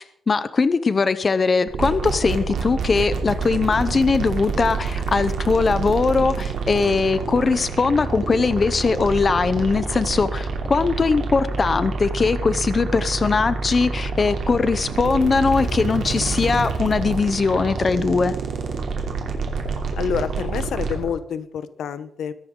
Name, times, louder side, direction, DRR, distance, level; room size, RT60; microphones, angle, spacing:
voice 1, 0.0-18.4, left 4 dB, 30° left, 13 dB, 0.7 m, -20 dB
sound 1, 1.7-21.1, right 4 dB, 65° right, 2.9 m, -27 dB
voice 2, 19.9-22.3, left 7 dB, 90° left, 14 dB, 0.9 m, -28 dB
21.5 x 11.0 x 3.8 m, 0.69 s
wide cardioid pair, 175°, 0 cm